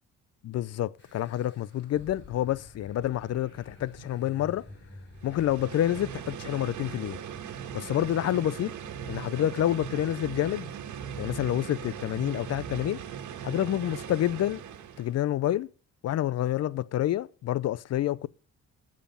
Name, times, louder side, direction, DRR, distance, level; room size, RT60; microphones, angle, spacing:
voice 1, 0.4-4.6 5.2-7.2 7.7-8.7 9.1-10.7 11.2-13.0 13.4-14.6 15.0-15.7 16.0-18.3, left 12 dB, 55° left, 0.5 m, -28 dB
sound 1, 1.0-7.0, left 1 dB, 40° left, 5.8 m, -50 dB
sound 2, 5.2-15.2, right 8 dB, 75° right, 1.6 m, -39 dB
11.5 x 7.5 x 5.3 m
cardioid pair, 90°, 30 cm